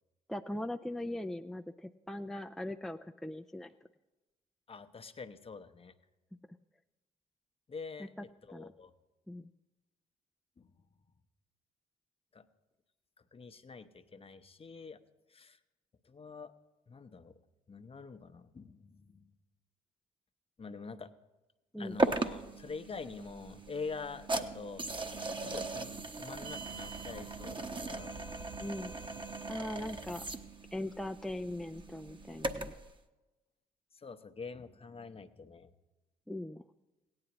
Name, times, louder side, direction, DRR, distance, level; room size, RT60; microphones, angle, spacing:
voice 1, 0.3-3.7 8.0-8.1 8.5-8.7 9.3-9.5 21.7-22.0 28.6-28.9 29.5-30.2 30.7-32.7 36.3-36.6, left 1 dB, ahead, 6 dB, 0.4 m, -40 dB
voice 2, 4.7-5.9 7.7-8.9 10.6-10.7 12.3-12.5 13.3-15.0 15.3-15.6 16.0-16.5 16.9-17.4 17.7-19.3 20.6-21.1 21.8-24.9 25.4-28.2 33.9-35.7, left 4 dB, 30° left, 9 dB, 0.8 m, -46 dB
sound 1, 22.0-32.9, right 3 dB, 25° right, 1.0 m, -38 dB
17.5 x 9.6 x 3.0 m, 1.1 s
hypercardioid pair, 50°, 18 cm